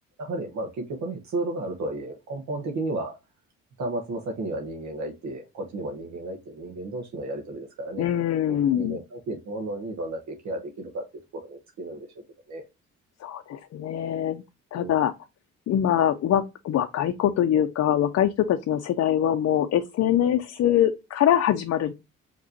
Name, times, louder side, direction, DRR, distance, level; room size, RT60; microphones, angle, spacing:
voice 1, 0.2-3.2 3.8-8.1 8.5-11.0 11.3-12.1 12.5-12.6 14.7-15.1, right 2 dB, 65° right, 1.1 m, -33 dB
voice 2, 8.0-9.0 13.2-14.4 14.7-15.1 15.7-21.9, left 10 dB, 55° left, 0.5 m, -23 dB
5.1 x 3.0 x 2.6 m
cardioid pair, 90°, 30 cm